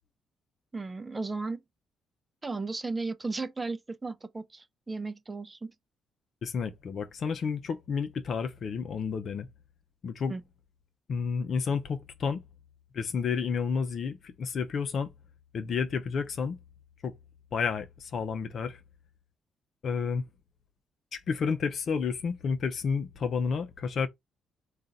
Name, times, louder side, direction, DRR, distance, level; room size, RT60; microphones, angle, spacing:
voice 1, 0.7-1.6 2.4-5.7 10.3-10.4, right 3 dB, 20° right, 0.5 m, -35 dB
voice 2, 6.4-9.5 10.0-10.3 11.1-12.4 12.9-15.1 15.5-16.6 17.0-17.1 17.5-18.8 19.8-20.2 21.1-24.1, left 5 dB, 55° left, 0.7 m, -31 dB
3.7 x 2.5 x 4.0 m
cardioid pair, 90°, 0 cm